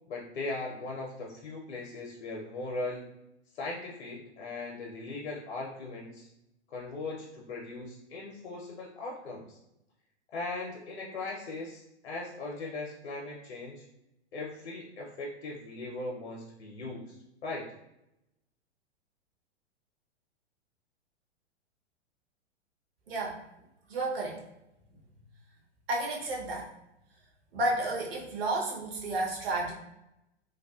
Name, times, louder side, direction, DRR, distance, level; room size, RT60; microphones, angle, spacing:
voice 1, 0.1-3.1 3.5-6.3 6.7-9.6 10.3-13.8 14.3-17.2 17.4-17.7, left 2 dB, 65° left, -2 dB, 0.6 m, -39 dB
voice 2, 23.1-23.4 23.9-24.4 25.9-26.7 27.5-29.7, right 2 dB, 55° right, -2 dB, 0.9 m, -31 dB
2.6 x 2.3 x 2.3 m, 0.87 s
figure-of-eight pair, 105°, 35 cm